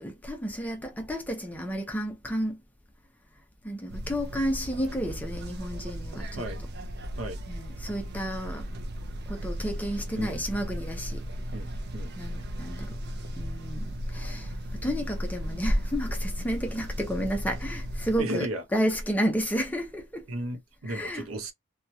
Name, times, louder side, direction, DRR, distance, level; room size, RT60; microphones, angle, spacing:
voice 1, 0.0-2.6 3.6-6.4 7.5-8.7 9.3-11.2 12.2-13.0 13.4-20.3 20.9-21.3, equal, 10° left, 0.6 m, -31 dB
sound 1, 3.9-18.2, equal, 50° right, 0.5 m, -36 dB
voice 2, 11.5-12.1 18.2-18.6 20.3-21.5, right 1 dB, 85° right, 0.7 m, -34 dB
3.0 x 2.3 x 2.6 m
head